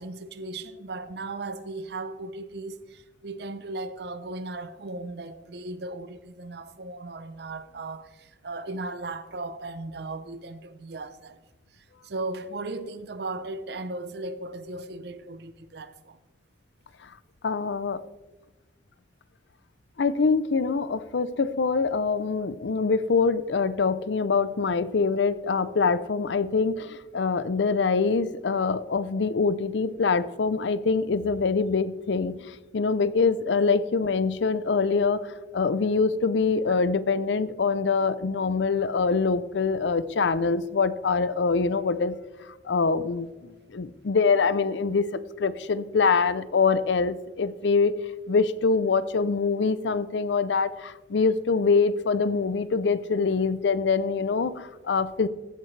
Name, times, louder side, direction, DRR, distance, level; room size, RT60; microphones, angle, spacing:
voice 1, 0.0-11.4 11.7-16.2, right 2 dB, 60° right, 0.6 m, -37 dB
voice 2, 17.4-18.0 20.0-42.1 42.6-47.9 48.3-55.3, left 4 dB, 75° left, 0.5 m, -24 dB
15.0 x 8.9 x 3.2 m
head